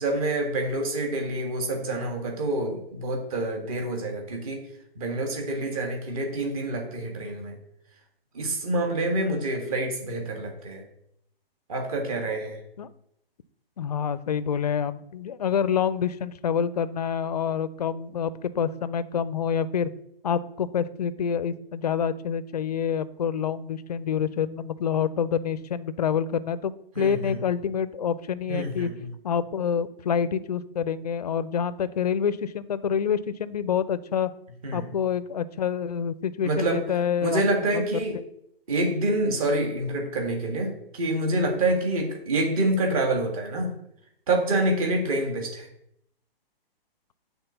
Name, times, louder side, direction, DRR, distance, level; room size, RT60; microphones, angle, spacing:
voice 1, 0.0-4.6 5.0-7.6 8.3-10.8 11.7-12.6 27.0-27.4 28.5-29.1 34.6-34.9 36.4-36.8 37.2-38.2 38.7-43.8 44.3-45.7, right 1 dB, 35° right, 2 dB, 1.8 m, -27 dB
voice 2, 13.8-19.9 20.2-28.9 29.2-34.3 34.7-37.4 37.7-38.0, left 7 dB, 40° left, 15 dB, 0.4 m, -27 dB
7.9 x 4.1 x 6.7 m, 0.75 s
hypercardioid pair, 165°, 30 cm